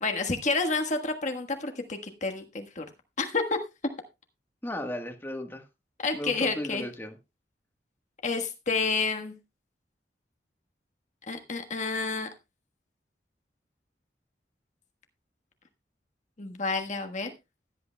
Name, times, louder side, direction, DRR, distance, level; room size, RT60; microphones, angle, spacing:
voice 1, 0.0-2.8 3.2-3.6 6.0-6.9 8.2-9.4 11.3-12.3 16.4-17.3, left 4 dB, 45° left, 1.4 m, -29 dB
voice 2, 4.6-5.6 6.1-7.2, left 1 dB, 15° left, 1.3 m, -35 dB
16.5 x 11.0 x 2.2 m
head